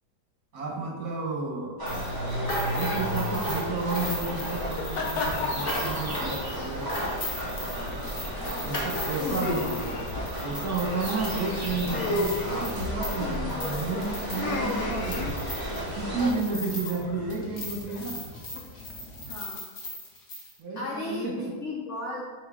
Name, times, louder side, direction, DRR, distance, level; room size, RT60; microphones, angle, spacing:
voice 1, 0.5-1.8 2.7-6.9 8.6-9.7 10.4-15.4 15.9-18.2 20.6-21.6, right 3 dB, 65° right, 0 dB, 1.7 m, -32 dB
sound 1, 1.8-16.3, equal, 15° right, 1.6 m, -33 dB
sound 2, 1.9-17.0 17.3-20.5, left 1 dB, 35° left, 1.3 m, -37 dB
sound 3, 3.7-19.3, left 2 dB, 75° left, 1.3 m, -36 dB
voice 2, 8.3-10.2 16.4-16.8 19.3-19.6 20.8-22.3, left 3 dB, 55° left, -4 dB, 1.1 m, -37 dB
6.5 x 3.0 x 4.9 m, 1.4 s
omnidirectional pair, 1.7 m